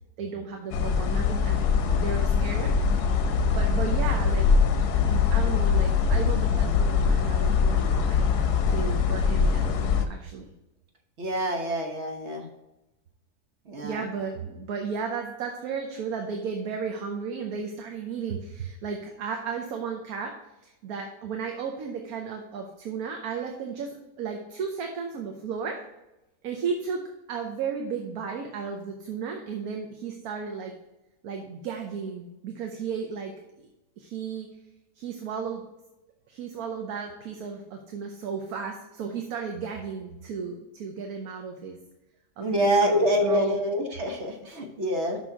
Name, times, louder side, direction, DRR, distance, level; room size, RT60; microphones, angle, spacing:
voice 1, 0.2-3.0 3.3-4.5 5.1-8.2 8.6-10.5 13.8-20.4 20.6-25.8 26.4-27.0 27.3-30.7 31.2-33.7 34.0-34.5 35.0-35.6 36.3-41.8 42.4-43.6, right 6 dB, 75° right, 3 dB, 1.3 m, -34 dB
sound 1, 0.7-10.1, left 6 dB, 85° left, 1.3 m, -23 dB
voice 2, 11.2-12.5 13.7-14.0 42.4-45.2, equal, 50° right, 3 dB, 1.3 m, -26 dB
6.2 x 5.9 x 4.6 m, 0.97 s
omnidirectional pair, 1.6 m